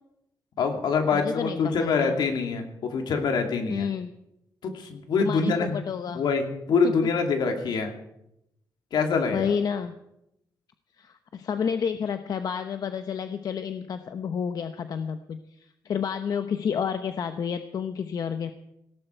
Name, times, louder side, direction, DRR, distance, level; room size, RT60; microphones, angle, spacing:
voice 1, 0.6-3.9 4.6-5.8 6.1-7.9 8.9-9.5, left 5 dB, 80° left, 4 dB, 2.7 m, -25 dB
voice 2, 1.1-2.2 3.7-4.1 5.2-6.2 9.3-10.0 11.0-18.5, left 7 dB, 60° left, 9 dB, 0.9 m, -30 dB
18.5 x 17.0 x 4.6 m, 0.82 s
cardioid pair, 105°, 7 cm